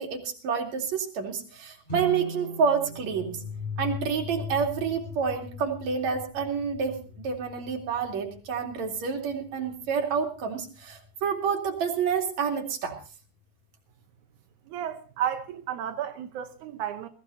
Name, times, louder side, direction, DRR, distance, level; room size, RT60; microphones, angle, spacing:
voice 1, 0.0-3.4 3.8-7.0 7.2-13.0, right 6 dB, 50° right, 3.4 m, -28 dB
sound 1, 1.8-5.1, right 3 dB, 15° left, 5.2 m, -40 dB
sound 2, 2.9-11.3, left 7 dB, 60° left, 2.5 m, -41 dB
voice 2, 14.7-17.1, right 9 dB, 75° right, 1.9 m, -32 dB
21.5 x 16.0 x 2.8 m
omnidirectional pair, 4.5 m